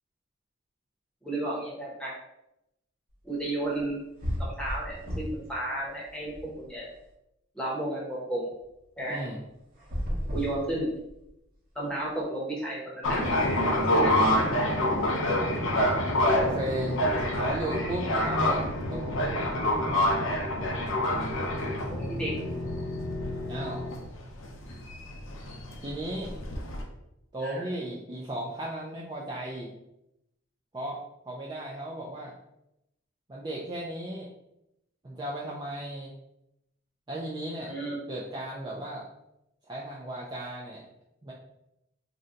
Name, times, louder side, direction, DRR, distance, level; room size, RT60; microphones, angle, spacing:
voice 1, 1.2-2.2 3.2-4.0 4.4-6.9 7.5-8.5 9.0-9.2 10.3-10.9 11.7-13.4 13.9-14.1 21.9-22.3 27.4-27.6 37.6-38.0, right 1 dB, 5° left, -5 dB, 0.7 m, -33 dB
sound 1, 3.8-3.9 4.2-5.5 5.9-7.0 9.7-11.3, equal, 40° right, 0.9 m, -34 dB
voice 2, 9.1-9.4 16.3-17.0 17.3-18.6 18.9-19.5 23.5-23.9 25.8-26.5 27.3-29.7 30.7-31.0 31.2-32.3 33.3-34.3 35.0-36.1 37.1-37.7 38.1-39.1 39.7-40.8 41.2-41.3, right 1 dB, 20° right, -5 dB, 0.3 m, -35 dB
sound 2, 13.0-26.8, left 1 dB, 75° left, 0.5 m, -27 dB
2.6 x 2.2 x 3.7 m, 0.85 s
head